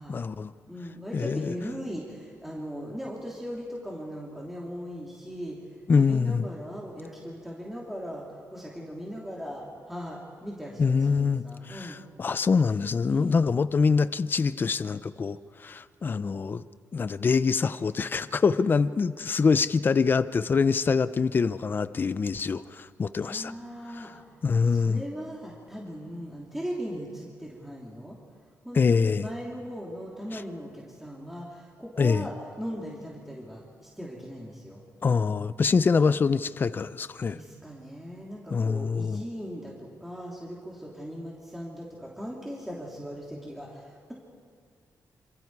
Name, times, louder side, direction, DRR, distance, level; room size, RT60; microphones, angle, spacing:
voice 1, 0.1-0.5 1.1-1.5 5.9-6.5 10.8-16.6 16.9-23.5 23.9-24.1 24.4-25.0 28.7-29.3 30.3-30.4 32.0-32.3 35.0-37.4 38.5-39.2, left 5 dB, 35° left, 14 dB, 0.6 m, -25 dB
voice 2, 0.7-5.6 6.0-12.0 13.1-13.4 23.2-24.1 24.6-28.2 28.6-34.8 37.3-44.1, equal, 5° right, -4 dB, 3.1 m, -39 dB
27.0 x 26.5 x 4.8 m, 2.2 s
wide cardioid pair, 140°, 6 cm